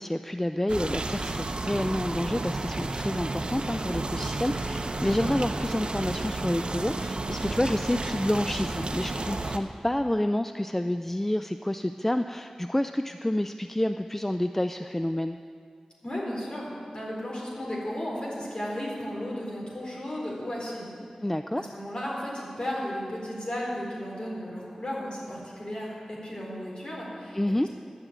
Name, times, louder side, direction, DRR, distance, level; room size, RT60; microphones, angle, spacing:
voice 1, 0.0-15.4 21.2-21.6 27.3-27.7, left 1 dB, 15° left, 8 dB, 0.3 m, -29 dB
sound 1, 0.7-9.6, right 2 dB, 55° right, 0.8 m, -32 dB
voice 2, 16.0-20.9 21.5-27.7, equal, 50° left, -4 dB, 3.9 m, -34 dB
10.5 x 8.0 x 8.6 m, 2.2 s
wide cardioid pair, 55°, 2 cm